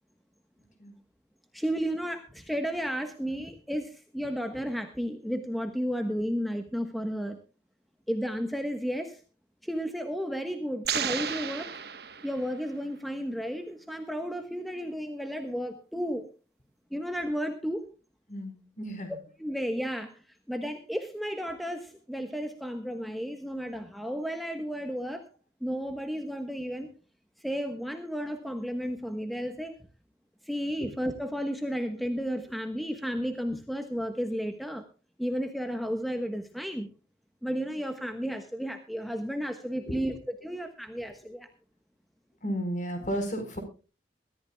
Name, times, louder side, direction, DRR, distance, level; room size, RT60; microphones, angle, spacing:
voice 1, 1.5-7.4 8.1-9.2 9.6-11.7 12.2-16.3 16.9-17.8 19.4-25.2 25.6-26.9 27.4-29.8 30.4-34.8 35.2-36.9 37.4-40.1 40.4-41.5, equal, ahead, 6 dB, 1.2 m, -33 dB
sound 1, 10.8-12.7, right 8 dB, 60° right, 1.2 m, -33 dB
voice 2, 18.3-19.2 39.9-40.0 42.4-43.6, equal, 45° left, 7 dB, 4.6 m, -33 dB
22.5 x 14.0 x 2.3 m, 0.34 s
head